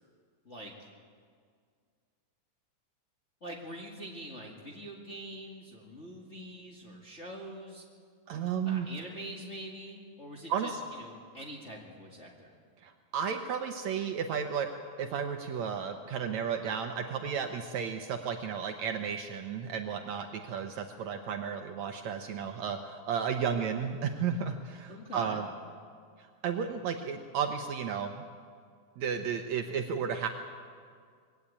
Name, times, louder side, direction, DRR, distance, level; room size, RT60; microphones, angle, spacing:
voice 1, 0.4-0.9 3.4-7.8 8.6-12.5 24.9-25.4, right 1 dB, 25° left, -2 dB, 1.7 m, -44 dB
voice 2, 8.3-8.9 10.5-10.8 12.8-14.7 15.0-25.5 26.2-28.3 29.0-30.3, right 7 dB, 70° right, 5 dB, 1.9 m, -33 dB
21.5 x 17.0 x 8.5 m, 2.1 s
omnidirectional pair, 3.9 m